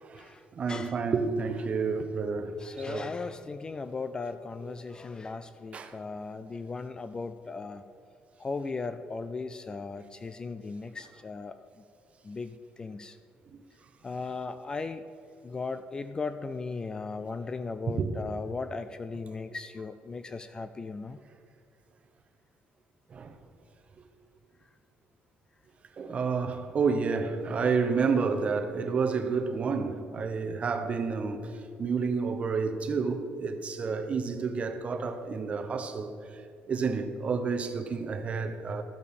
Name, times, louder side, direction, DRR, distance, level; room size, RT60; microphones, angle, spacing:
voice 1, 0.6-2.5 2.9-3.1 4.6-4.7 5.7-5.9 17.9-18.2 23.1-23.4 26.0-36.4 36.7-38.8, right 5 dB, 35° right, 0.9 m, -30 dB
voice 2, 2.6-7.8 8.4-11.7 12.2-13.2 14.0-15.0 15.4-21.2, left 4 dB, 20° left, 0.3 m, -37 dB
13.5 x 6.6 x 5.3 m
cardioid pair, 140°, 4 cm